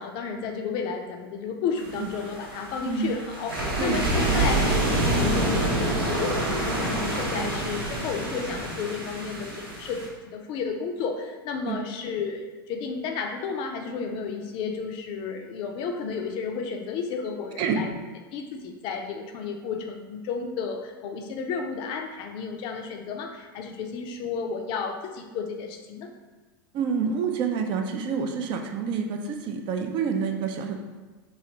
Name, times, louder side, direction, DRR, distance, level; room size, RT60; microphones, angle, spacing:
voice 1, 0.0-17.9 18.3-26.1, left 5 dB, 45° left, 4 dB, 0.4 m, -32 dB
sound 1, 1.8-10.1, right 1 dB, 85° right, 0.8 m, -27 dB
voice 2, 2.9-3.2 3.8-4.4 7.4-7.5 11.7-11.9 17.6-17.9 26.7-30.9, right 6 dB, 40° right, 5 dB, 0.4 m, -28 dB
3.1 x 2.4 x 2.9 m, 1.3 s
hypercardioid pair, 95°, 12 cm